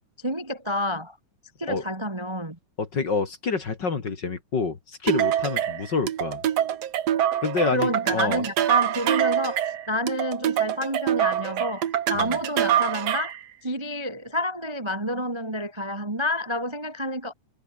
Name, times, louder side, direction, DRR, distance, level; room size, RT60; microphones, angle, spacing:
voice 1, 0.2-1.2 1.6-2.6 7.7-13.3 13.6-17.3, left 1 dB, 40° right, 0.4 m, -29 dB
voice 2, 2.8-6.4 7.4-8.5 12.1-12.4, left 4 dB, 35° left, 2.4 m, -27 dB
sound 1, 5.1-13.4, right 10 dB, 60° right, 2.2 m, -25 dB
omnidirectional pair, 3.7 m